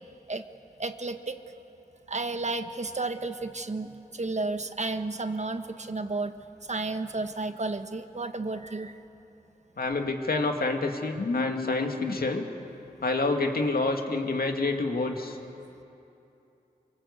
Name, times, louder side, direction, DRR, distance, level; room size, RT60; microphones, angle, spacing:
voice 1, 0.8-1.4 2.1-6.4 6.7-9.0, right 3 dB, 45° right, 8 dB, 1.4 m, -32 dB
voice 2, 9.8-12.5 13.0-15.4, left 3 dB, 75° left, 4 dB, 2.3 m, -27 dB
24.0 x 24.0 x 8.3 m, 2.8 s
cardioid pair, 55°, 16 cm